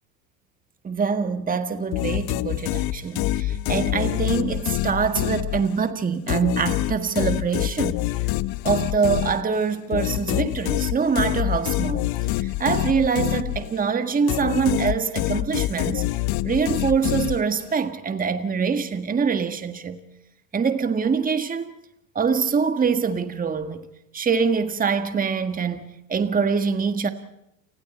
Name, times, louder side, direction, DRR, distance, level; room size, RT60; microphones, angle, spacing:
voice 1, 0.8-8.0 8.6-12.0 12.3-16.0 16.4-20.0 20.5-21.7 22.1-23.9 24.1-27.1, right 6 dB, 15° right, 1.7 m, -24 dB
sound 1, 1.9-5.9 6.3-13.9 14.3-17.8, left 17 dB, 50° left, 1.1 m, -26 dB
30.0 x 25.5 x 4.4 m
hypercardioid pair, 95°, 47 cm